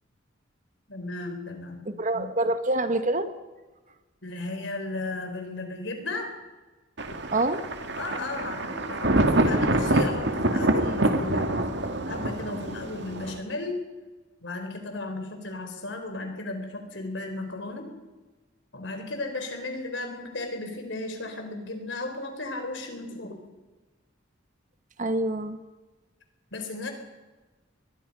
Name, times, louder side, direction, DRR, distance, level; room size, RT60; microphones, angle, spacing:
voice 1, 0.9-2.3 4.2-6.4 8.0-11.6 12.1-13.8 14.4-18.0 18.7-23.5 26.5-26.9, left 2 dB, 65° left, 5 dB, 4.3 m, -35 dB
voice 2, 1.8-3.3 7.3-7.6 8.4-8.5 25.0-25.6, right 2 dB, 40° right, 9 dB, 1.5 m, -26 dB
Thunder, 7.0-13.4, right 1 dB, 60° right, 2.2 m, -26 dB
22.5 x 22.0 x 5.5 m, 1.2 s
head